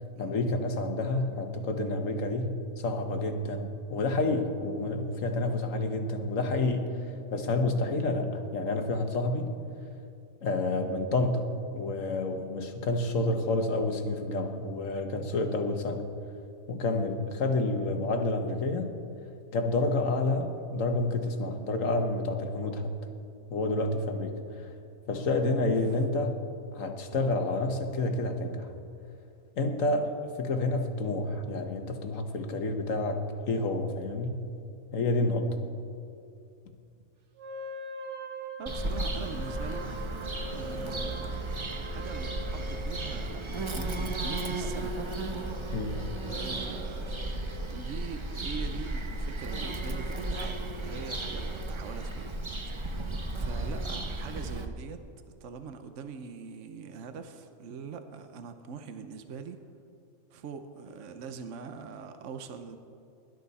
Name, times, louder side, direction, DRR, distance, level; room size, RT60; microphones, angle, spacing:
voice 1, 0.2-6.9 7.3-9.5 10.4-11.5 11.7-16.1 16.7-18.9 19.5-22.9 23.5-24.7 25.1-26.4 26.7-28.7 29.6-34.4 34.9-35.5 45.7-45.9, left 2 dB, 65° left, 6 dB, 1.6 m, -29 dB
Wind instrument woodwind instrument, 37.4-43.0, equal, 80° right, 1.7 m, -42 dB
voice 2, 38.6-39.9 40.5-41.4 41.7-45.0 46.3-47.3 47.7-52.3 52.7-52.8 53.4-55.0 55.4-59.6 60.3-62.8, right 6 dB, 60° right, 8 dB, 1.1 m, -42 dB
Bird vocalization bird call bird song, 38.7-54.7, right 2 dB, 25° right, 0.7 m, -34 dB
sound 1, 40.2-44.6 44.9-47.7, right 1 dB, 10° left, 1.7 m, -49 dB
22.0 x 12.0 x 4.2 m, 2.5 s
omnidirectional pair, 1.5 m